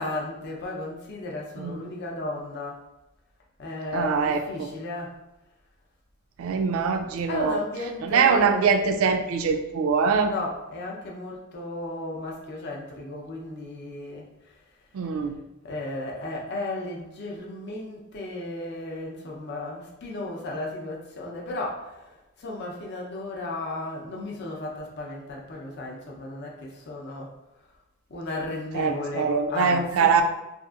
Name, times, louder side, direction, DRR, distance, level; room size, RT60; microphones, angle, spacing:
voice 1, 0.0-2.8 3.6-5.2 7.3-8.8 10.2-14.3 15.6-27.3 28.1-30.2, left 2 dB, 55° left, -1 dB, 0.6 m, -34 dB
voice 2, 3.9-4.7 6.4-7.6 8.0-10.3 14.9-15.4 28.7-30.2, right 5 dB, 80° right, 7 dB, 0.3 m, -23 dB
2.8 x 2.5 x 2.4 m, 0.96 s
head